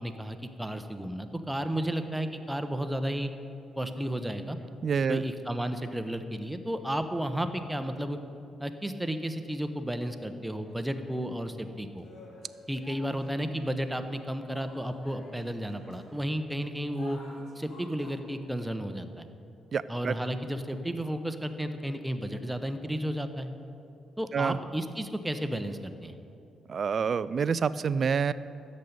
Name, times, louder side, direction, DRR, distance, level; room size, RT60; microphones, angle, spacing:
voice 1, 0.0-3.3 3.8-4.6 5.1-8.2 8.6-12.1 12.7-17.2 17.6-19.3 19.9-23.5 24.2-26.1, equal, 5° right, 8 dB, 1.0 m, -33 dB
voice 2, 4.8-5.2 19.7-20.2 24.3-24.6 26.7-28.3, right 6 dB, 50° right, 17 dB, 0.3 m, -27 dB
sound 1, 10.4-11.1 11.6-18.2, left 2 dB, 55° left, 1.8 m, -52 dB
13.5 x 5.3 x 8.4 m, 2.7 s
figure-of-eight pair, 40°, 0 cm